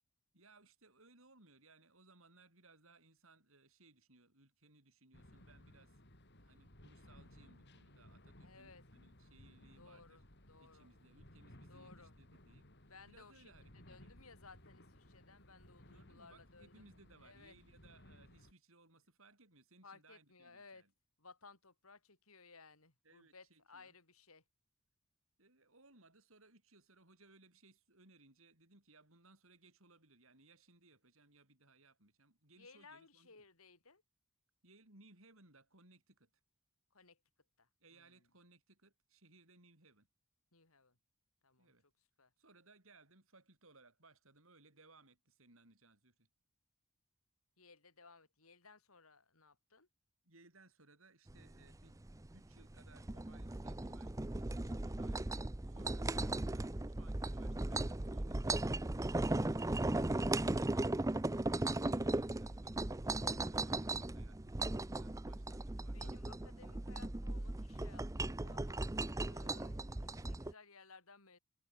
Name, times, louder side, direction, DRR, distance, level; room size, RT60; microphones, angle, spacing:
voice 1, 0.3-6.0 6.4-10.2 10.6-12.7 13.0-14.2 15.9-20.9 23.0-23.9 25.4-33.3 34.6-36.3 37.8-40.1 41.6-41.8 42.4-46.3 50.2-52.0 52.3-60.7 61.5-66.2, right 3 dB, 65° right, 7.1 m, -66 dB
sound 1, 5.1-18.5, left 1 dB, 50° left, 5.6 m, -61 dB
voice 2, 8.4-8.8 9.8-10.2 10.5-10.9 11.7-12.1 12.9-16.8 17.2-17.6 19.8-20.8 21.2-24.4 32.6-34.0 36.9-37.2 37.6-38.3 40.5-41.0 41.4-41.7 42.2-42.3 47.6-49.9 56.0-56.3 65.9-71.4, left 4 dB, 80° left, 4.7 m, -60 dB
sound 2, 51.3-70.5, right 2 dB, 15° right, 0.6 m, -37 dB
head